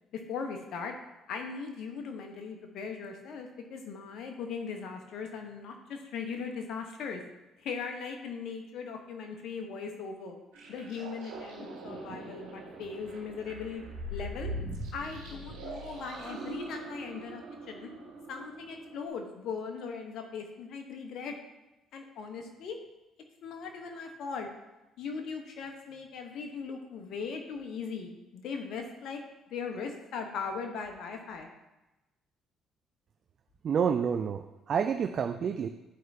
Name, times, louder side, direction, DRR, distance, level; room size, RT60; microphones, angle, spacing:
voice 1, 0.1-0.9 1.3-7.2 7.6-10.3 10.7-13.8 14.1-14.5 14.9-17.9 18.3-21.3 21.9-22.8 23.4-24.5 25.0-29.2 29.5-31.5, left 5 dB, 65° left, 4 dB, 1.1 m, -39 dB
sound 1, 10.5-19.1, right 1 dB, 90° right, 1.6 m, -42 dB
voice 2, 33.6-35.7, right 7 dB, 55° right, 7 dB, 0.4 m, -29 dB
11.5 x 4.5 x 2.8 m, 1.0 s
supercardioid pair, 60°, 0 cm